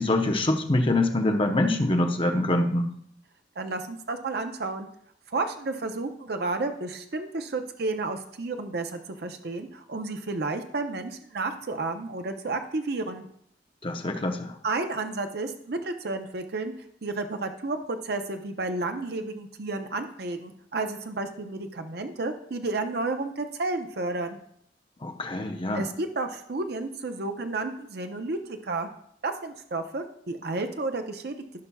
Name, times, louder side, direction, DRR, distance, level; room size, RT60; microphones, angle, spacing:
voice 1, 0.0-2.9 13.8-14.5 25.0-25.8, left 1 dB, 30° left, 4 dB, 0.8 m, -25 dB
voice 2, 3.6-4.9 5.3-13.3 14.6-16.7 17.0-24.4 25.7-28.9 29.2-31.4, right 3 dB, 60° right, 6 dB, 0.7 m, -31 dB
15.5 x 5.5 x 2.3 m, 0.68 s
head